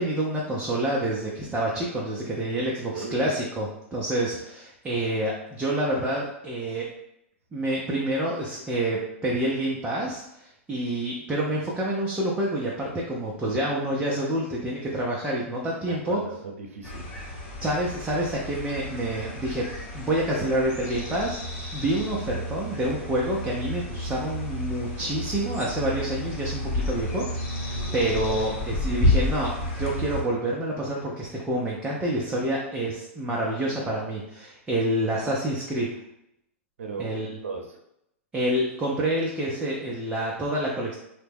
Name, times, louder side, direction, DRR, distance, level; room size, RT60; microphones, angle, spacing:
voice 1, 0.0-6.9 7.5-16.2 17.6-19.7 19.9-27.2 27.5-35.9 37.0-37.3 38.3-40.9, right 1 dB, 10° right, -4 dB, 0.5 m, -28 dB
voice 2, 2.9-3.2 15.9-17.1 27.7-27.9 28.3-28.4 36.8-37.1 37.4-37.8, right 4 dB, 85° right, 2 dB, 0.6 m, -37 dB
sound 1, 16.8-30.2, left 1 dB, 35° left, 0.9 m, -31 dB
2.9 x 2.1 x 3.4 m, 0.79 s
hypercardioid pair, 125°, 7 cm